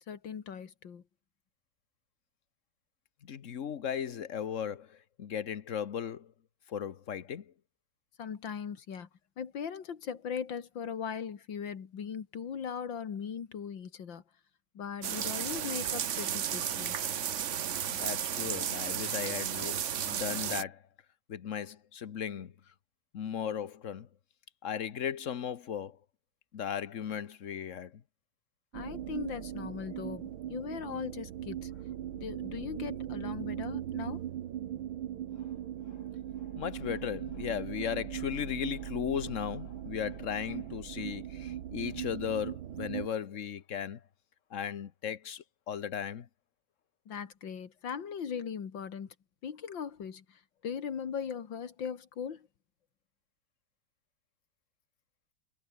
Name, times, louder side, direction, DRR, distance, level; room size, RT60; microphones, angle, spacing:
voice 1, 0.1-1.0 8.2-9.1 9.4-14.2 14.7-17.0 28.7-31.7 32.1-34.2 47.1-49.1 49.4-52.5, left 7 dB, 70° left, 2.5 m, -39 dB
voice 2, 3.2-6.3 6.7-7.5 17.9-20.8 21.3-22.5 23.1-24.1 24.6-26.0 26.5-28.0 36.6-44.0 44.5-46.3, left 8 dB, 45° left, 1.2 m, -36 dB
sound 1, 15.0-20.6, right 9 dB, 50° right, 0.9 m, -33 dB
sound 2, 28.7-43.1, right 11 dB, 85° right, 1.9 m, -39 dB
omnidirectional pair, 2.2 m